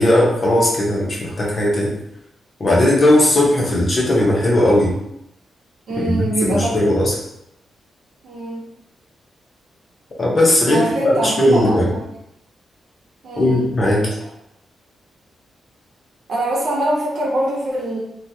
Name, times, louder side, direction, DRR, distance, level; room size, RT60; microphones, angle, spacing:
voice 1, 0.0-2.0 2.6-5.0 6.0-7.1 10.2-11.9 13.4-14.1, left 1 dB, 30° left, -4 dB, 0.8 m, -17 dB
voice 2, 5.9-6.7 8.2-8.7 10.7-12.0 13.2-13.7 16.3-18.0, right 1 dB, 60° right, -4 dB, 0.9 m, -23 dB
3.0 x 2.3 x 2.7 m, 0.81 s
wide cardioid pair, 150°, 0 cm